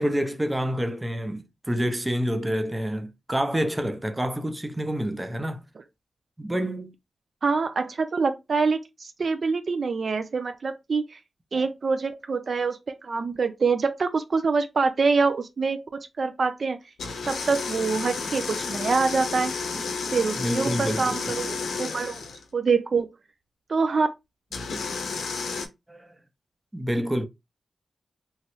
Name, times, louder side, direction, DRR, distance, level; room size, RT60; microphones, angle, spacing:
voice 1, 0.0-5.6 6.4-6.9 11.5-11.6 20.4-21.2 24.9-25.0 25.9-26.2 26.7-27.3, equal, 15° right, 0.6 m, -28 dB
voice 2, 7.4-11.2 11.5-16.8 17.3-19.5 20.1-22.2 22.5-23.1 23.7-24.1, right 4 dB, 60° right, 0.4 m, -25 dB
sound 1, 17.0-22.4 24.5-25.7, left 4 dB, 90° left, 0.6 m, -31 dB
3.0 x 2.3 x 2.9 m
cardioid pair, 55°, 0 cm